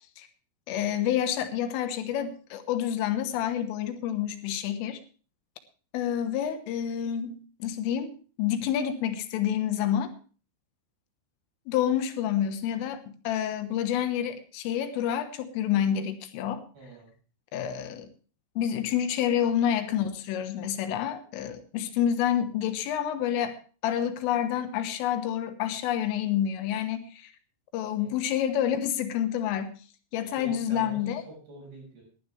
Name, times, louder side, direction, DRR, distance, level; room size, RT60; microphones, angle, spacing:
voice 1, 0.7-5.0 5.9-10.1 11.7-16.6 17.5-18.1 18.6-23.6 23.8-27.3 27.7-29.8 30.1-31.2, left 10 dB, 80° left, 8 dB, 3.7 m, -28 dB
voice 2, 16.7-17.1 28.0-28.1 30.4-32.0, right 2 dB, 55° right, 0 dB, 7.9 m, -46 dB
19.5 x 11.5 x 3.3 m, 0.37 s
omnidirectional pair, 5.8 m